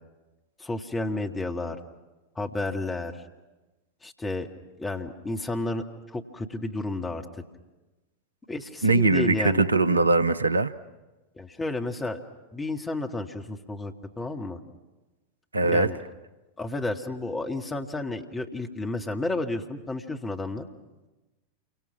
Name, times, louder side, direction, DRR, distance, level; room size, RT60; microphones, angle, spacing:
voice 1, 0.6-1.8 2.4-3.2 4.0-4.5 4.8-7.3 8.5-9.6 11.4-12.2 12.5-14.6 15.6-16.0 16.6-20.7, left 2 dB, 15° left, 4 dB, 1.9 m, -31 dB
voice 2, 8.8-10.7 15.5-15.9, right 3 dB, 80° right, 15 dB, 0.7 m, -21 dB
28.5 x 24.5 x 6.0 m, 1.1 s
figure-of-eight pair, 90°, 0 cm